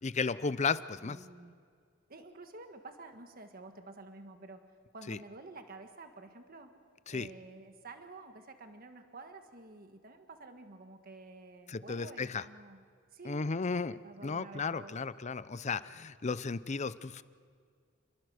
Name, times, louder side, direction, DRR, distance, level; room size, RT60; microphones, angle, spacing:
voice 1, 0.0-1.2 5.1-5.2 7.1-7.3 11.7-12.4 13.2-17.2, left 4 dB, 35° left, 16 dB, 0.6 m, -34 dB
voice 2, 1.0-1.6 2.1-4.6 4.9-6.7 7.1-12.8 13.1-13.5 13.9-15.0, right 3 dB, 50° right, 6 dB, 1.5 m, -50 dB
28.5 x 21.5 x 6.5 m, 2.1 s
head